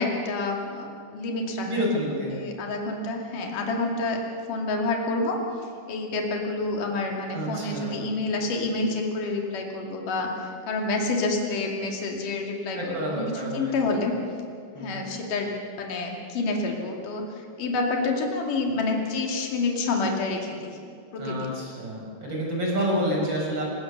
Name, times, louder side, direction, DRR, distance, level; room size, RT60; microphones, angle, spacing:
voice 1, 0.0-1.7 2.1-4.2 4.5-5.4 5.9-14.2 14.8-17.3 17.6-20.8 21.1-21.5, left 3 dB, 50° left, 0 dB, 4.0 m, -28 dB
voice 2, 1.6-2.4 7.3-8.0 12.7-13.8 14.7-15.1 21.2-23.6, equal, 25° right, -2 dB, 6.5 m, -29 dB
28.5 x 18.0 x 6.8 m, 2.2 s
omnidirectional pair, 5.0 m